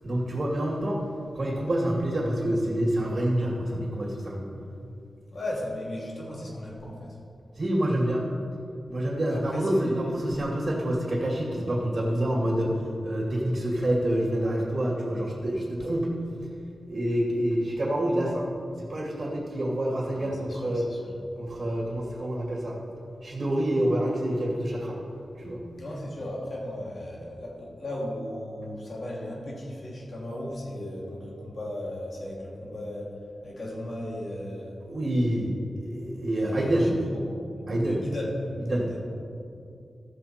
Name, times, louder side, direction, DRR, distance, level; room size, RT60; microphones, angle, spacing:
voice 1, 0.0-1.0 1.3-4.5 7.6-8.2 8.9-12.7 13.0-16.1 16.9-18.5 18.8-20.9 21.4-22.8 23.2-25.0 25.4-25.6 34.9-36.9 37.7-38.0 38.7-38.9, right 1 dB, 40° right, -3 dB, 2.3 m, -27 dB
voice 2, 5.3-7.2 9.3-10.1 20.1-21.1 25.8-33.2 33.4-34.8 36.3-37.2 37.8-38.3 38.8-39.0, left 1 dB, 60° left, -3 dB, 2.8 m, -36 dB
14.5 x 6.9 x 4.4 m, 2.6 s
cardioid pair, 60°, 0 cm